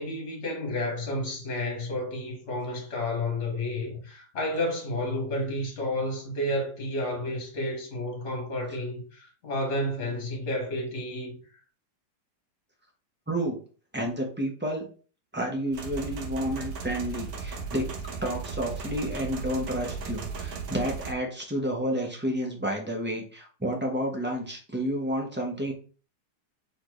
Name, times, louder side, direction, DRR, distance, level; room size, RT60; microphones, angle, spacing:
voice 1, 0.0-11.3, left 1 dB, 40° left, 1.8 m, -31 dB
voice 2, 13.3-13.6 13.9-14.9 15.3-17.9 18.2-25.7, equal, 10° right, 0.6 m, -30 dB
sound 1, 15.7-21.1, right 5 dB, 55° right, 0.9 m, -36 dB
4.4 x 3.7 x 3.1 m
omnidirectional pair, 1.9 m